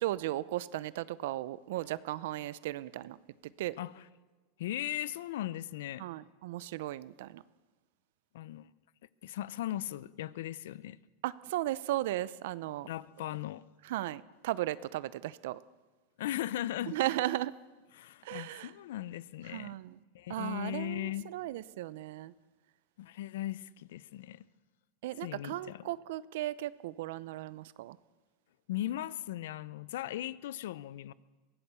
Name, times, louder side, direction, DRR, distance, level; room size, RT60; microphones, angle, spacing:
voice 1, 0.0-3.2 3.6-3.8 6.0-7.4 11.2-12.9 13.9-15.6 16.9-17.5 18.2-18.7 19.5-20.0 20.3-22.3 25.0-28.0, right 15 dB, 70° right, 19 dB, 0.6 m, -36 dB
voice 2, 4.6-6.1 8.3-8.7 9.2-11.0 12.8-13.6 16.2-17.0 17.9-19.8 20.1-21.3 23.0-24.4 25.2-25.9 28.7-31.1, left 13 dB, 75° left, 19 dB, 0.6 m, -38 dB
23.0 x 17.5 x 6.9 m, 1.3 s
supercardioid pair, 140°, 0 cm